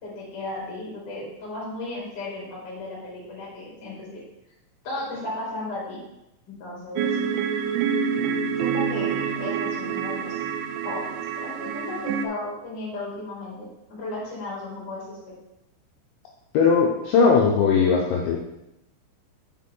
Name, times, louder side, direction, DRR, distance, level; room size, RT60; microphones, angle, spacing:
voice 1, 0.0-4.2 4.8-6.0 6.5-7.1 8.6-10.4 10.8-15.3, left 2 dB, 40° left, -5 dB, 2.6 m, -35 dB
sound 1, 7.0-12.3, right 7 dB, 85° right, 2.6 m, -27 dB
voice 2, 16.5-18.4, left 5 dB, 75° left, -2 dB, 2.8 m, -19 dB
6.9 x 6.3 x 3.8 m, 0.88 s
omnidirectional pair, 5.7 m